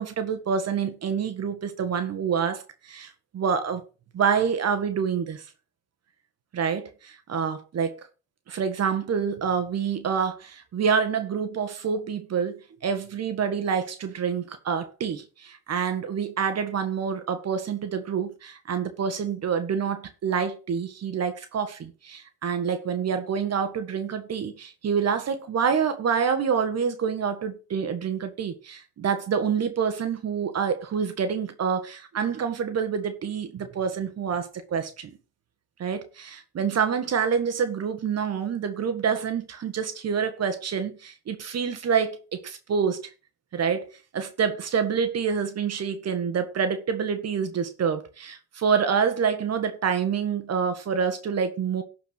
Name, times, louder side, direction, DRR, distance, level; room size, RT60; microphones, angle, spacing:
voice 1, 0.0-3.8 4.1-5.4 6.5-8.1 8.5-35.2 35.8-43.1 43.5-51.8, right 6 dB, 55° right, 1.6 m, -27 dB
11.5 x 4.8 x 6.2 m
cardioid pair, 90°, 30 cm